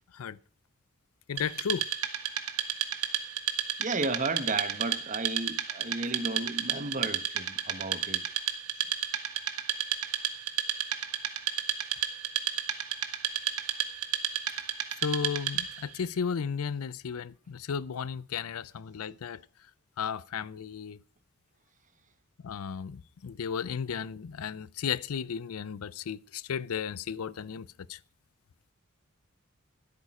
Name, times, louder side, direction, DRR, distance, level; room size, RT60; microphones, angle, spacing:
voice 1, 1.3-1.9 13.4-13.5 15.0-19.4 20.0-21.0 22.4-28.0, left 7 dB, 75° left, 0.5 m, -34 dB
Wood, 1.4-15.9, right 10 dB, 90° right, 1.5 m, -32 dB
voice 2, 3.8-8.2, right 3 dB, 35° right, 1.1 m, -33 dB
15.0 x 8.6 x 4.8 m
head